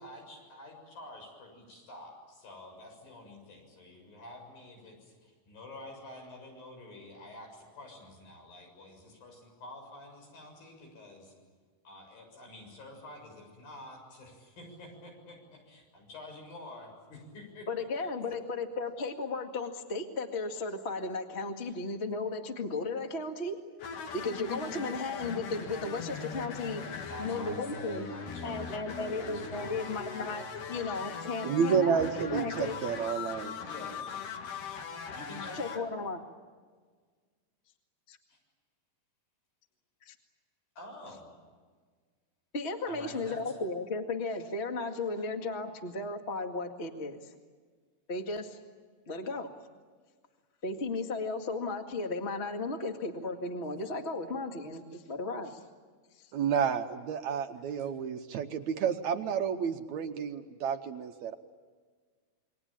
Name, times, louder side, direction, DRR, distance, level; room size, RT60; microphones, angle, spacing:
voice 1, 0.0-11.3 11.8-17.7 18.0-18.4 21.6-21.7 27.0-29.8 33.2-34.1 35.1-35.9 38.3-38.4 40.8-41.3 42.9-43.6, left 1 dB, 85° left, 2 dB, 8.9 m, -48 dB
voice 2, 17.7-23.6 24.1-26.9 27.2-28.1 28.4-32.0 32.3-32.7 35.5-36.2 38.1-38.2 40.0-40.1 42.5-47.3 48.1-48.6 49.1-49.5 50.6-55.6, left 3 dB, 25° left, 4 dB, 1.6 m, -35 dB
sound 1, 23.8-35.8, left 6 dB, 65° left, 3.4 m, -40 dB
voice 3, 31.4-33.5 56.3-61.4, right 7 dB, 70° right, 7 dB, 2.0 m, -30 dB
28.5 x 23.0 x 8.8 m, 1.5 s
omnidirectional pair, 4.0 m